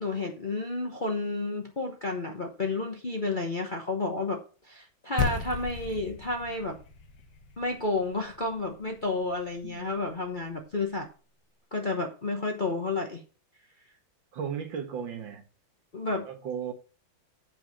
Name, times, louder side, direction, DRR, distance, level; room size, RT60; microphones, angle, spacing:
voice 1, 0.0-6.8 7.6-11.1 11.7-13.2 15.9-16.3, left 3 dB, 35° left, 0.8 m, -31 dB
sound 1, 5.2-9.7, left 5 dB, 60° left, 1.8 m, -36 dB
voice 2, 14.3-15.4 16.1-16.7, right 7 dB, 70° right, 2.0 m, -35 dB
7.7 x 5.6 x 6.2 m
omnidirectional pair, 2.2 m